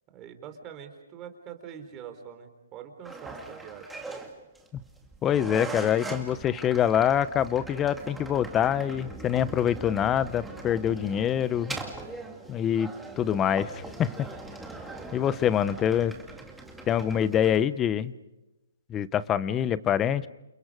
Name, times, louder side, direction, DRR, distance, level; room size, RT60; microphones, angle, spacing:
voice 1, 0.1-4.0 14.8-15.3, right 8 dB, 25° right, 7 dB, 3.7 m, -44 dB
sound 1, 3.1-17.6, right 3 dB, 5° right, 2.3 m, -41 dB
voice 2, 5.2-11.8 12.5-12.9 13.2-14.1 15.1-16.1 16.9-18.1 18.9-20.3, left 9 dB, 20° left, 17 dB, 0.8 m, -25 dB
29.0 x 29.0 x 5.0 m, 0.98 s
hypercardioid pair, 145°, 0 cm